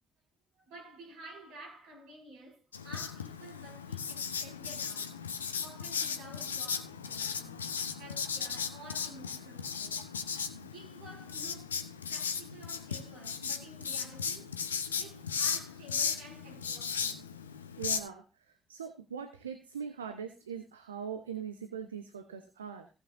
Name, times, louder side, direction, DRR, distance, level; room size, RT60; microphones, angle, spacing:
voice 1, 0.5-5.2 5.6-7.7 7.9-10.1 10.6-14.6 15.0-17.3, right 2 dB, 65° right, 6.0 m, -52 dB
Writing, 2.7-18.0, left 6 dB, 80° left, 0.7 m, -36 dB
voice 2, 17.8-18.2 18.7-22.9, right 7 dB, 80° right, 0.9 m, -41 dB
17.5 x 8.4 x 2.6 m
figure-of-eight pair, 45°, 0 cm